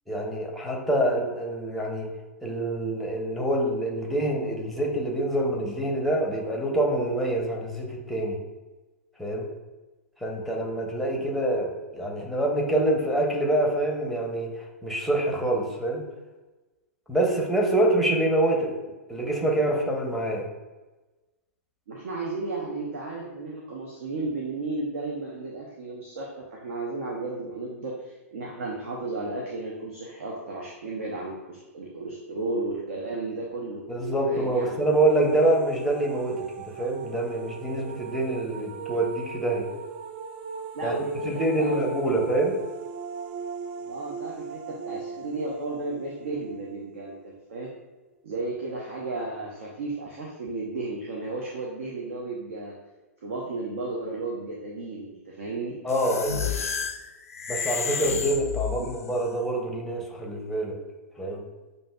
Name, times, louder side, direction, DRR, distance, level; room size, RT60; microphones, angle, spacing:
voice 1, 0.1-2.1 2.4-8.4 9.2-9.5 10.2-16.0 17.1-18.7 19.1-20.5 33.9-39.7 40.8-40.9 41.2-42.5 55.8-56.5 57.5-60.8 61.2-61.4, right 1 dB, ahead, -1 dB, 0.7 m, -26 dB
voice 2, 21.9-33.8 34.2-34.8 40.7-42.2 43.8-47.7 48.2-52.8 53.2-55.8 58.8-58.9, right 2 dB, 60° right, -2 dB, 0.7 m, -34 dB
sound 1, 34.4-47.3, right 6 dB, 35° right, 0.3 m, -38 dB
sound 2, 55.9-59.1, left 6 dB, 75° left, 0.4 m, -31 dB
7.1 x 2.6 x 2.3 m, 1.2 s
figure-of-eight pair, 105°, 8 cm